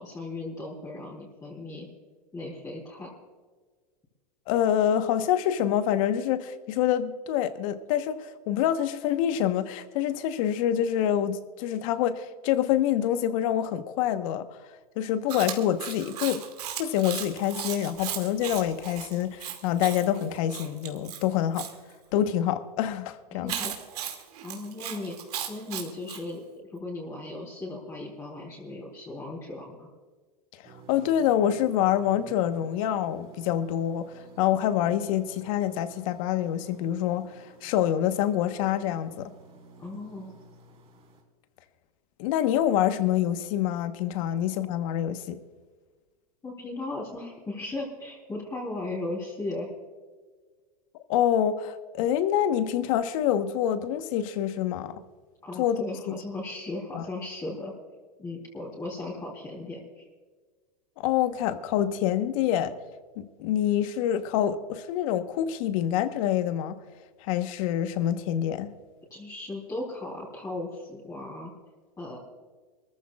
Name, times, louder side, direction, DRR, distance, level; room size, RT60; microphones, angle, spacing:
voice 1, 0.0-1.9 2.3-3.1 23.3-23.7 24.4-25.2 25.5-29.9 39.8-40.4 46.4-49.7 55.4-57.7 58.2-60.1 69.1-71.5 72.0-72.2, left 2 dB, 15° left, 3.6 m, -37 dB
voice 2, 4.5-14.5 15.0-16.4 16.8-21.7 22.1-23.5 30.6-39.3 42.2-45.4 51.1-54.9 55.6-56.1 56.9-57.1 61.0-62.7 63.2-66.8 67.2-68.7, left 10 dB, 60° left, 1.2 m, -26 dB
Chewing mastication, 15.3-21.7 23.5-26.2, right 9 dB, 85° right, 2.4 m, -36 dB
sound 1, 30.6-41.2, right 5 dB, 30° right, 3.5 m, -52 dB
24.5 x 14.0 x 2.4 m
supercardioid pair, 125°, 19 cm